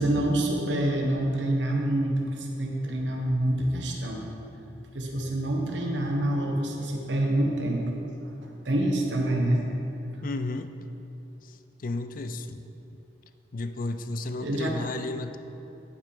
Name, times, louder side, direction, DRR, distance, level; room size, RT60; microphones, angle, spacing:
voice 1, 0.0-4.2 4.9-7.8 8.4-9.6 14.4-14.7, right 1 dB, 80° right, 0 dB, 1.3 m, -26 dB
voice 2, 10.2-10.8 11.4-12.6 12.9-13.0 13.5-15.4, left 2 dB, 50° left, 9 dB, 0.4 m, -33 dB
11.0 x 5.6 x 4.9 m, 3.0 s
head